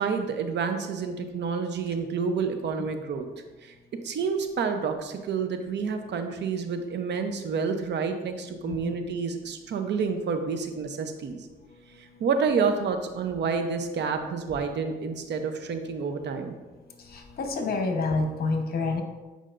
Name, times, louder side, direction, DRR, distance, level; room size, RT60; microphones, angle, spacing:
voice 1, 0.0-3.3 3.6-11.5 12.0-16.5, right 5 dB, 60° right, 6 dB, 0.8 m, -29 dB
voice 2, 8.6-8.9 17.1-19.0, left 3 dB, 50° left, 4 dB, 1.1 m, -28 dB
8.5 x 5.1 x 2.5 m, 1.2 s
cardioid pair, 90°, 20 cm